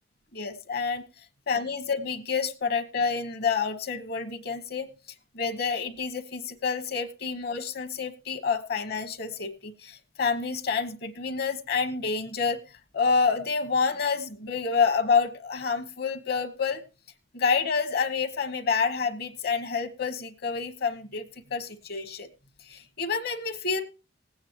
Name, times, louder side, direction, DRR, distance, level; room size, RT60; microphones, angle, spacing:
voice 1, 0.3-1.0 1.5-4.9 5.3-12.6 12.9-16.8 17.3-22.3 22.7-23.8, left 5 dB, 55° left, 10 dB, 1.2 m, -28 dB
19.5 x 8.7 x 3.0 m, 0.32 s
head